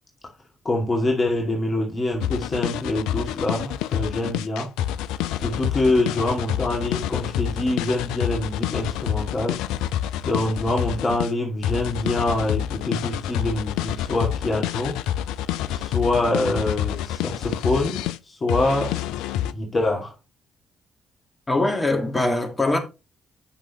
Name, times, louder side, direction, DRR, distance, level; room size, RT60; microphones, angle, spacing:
voice 1, 0.6-4.7 5.4-9.6 10.2-15.0 15.7-19.0 19.5-20.1, left 2 dB, 35° left, 2.3 m, -25 dB
sound 1, 2.2-11.3 11.6-18.2 18.5-19.5, left 11 dB, 70° left, 0.4 m, -27 dB
voice 2, 21.5-22.8, left 2 dB, 20° left, 2.4 m, -22 dB
9.2 x 6.1 x 3.0 m
figure-of-eight pair, 40°, 0 cm